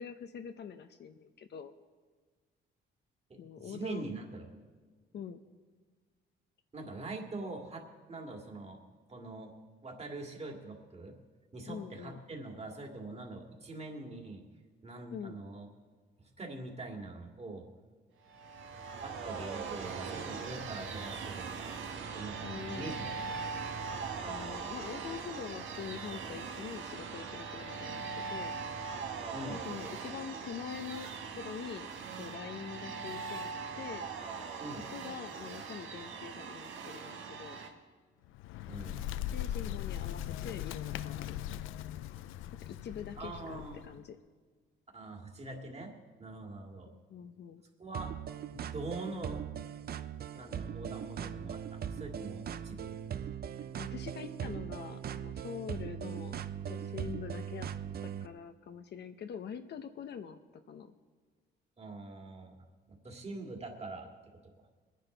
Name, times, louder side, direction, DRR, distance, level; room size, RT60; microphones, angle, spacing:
voice 1, 0.0-1.7 3.4-4.1 5.1-5.4 11.7-12.2 15.1-15.4 22.4-23.0 24.3-28.6 29.5-31.1 31.4-31.9 32.2-33.5 33.7-34.1 34.9-37.6 39.3-41.4 42.6-44.2 46.9-47.6 53.8-56.4 56.7-57.7 58.0-60.9, left 7 dB, 60° left, 7 dB, 0.8 m, -44 dB
voice 2, 3.3-4.5 6.7-8.8 9.1-9.5 9.8-11.2 11.5-14.4 14.8-15.7 16.2-17.7 19.0-21.8 22.1-23.4 29.3-29.6 34.6-34.9 38.7-39.0 43.2-43.9 44.9-46.9 47.8-48.1 48.5-49.4 50.3-53.3 61.8-64.1 64.6-64.7, right 2 dB, 30° right, 2 dB, 2.4 m, -44 dB
sound 1, 18.3-37.7, right 5 dB, 75° right, 1.6 m, -41 dB
Bird, 38.2-44.0, left 12 dB, 90° left, 0.4 m, -39 dB
sound 2, 47.9-58.3, right 8 dB, 50° right, 0.6 m, -40 dB
21.5 x 10.0 x 4.0 m, 1.5 s
cardioid pair, 90°, 20 cm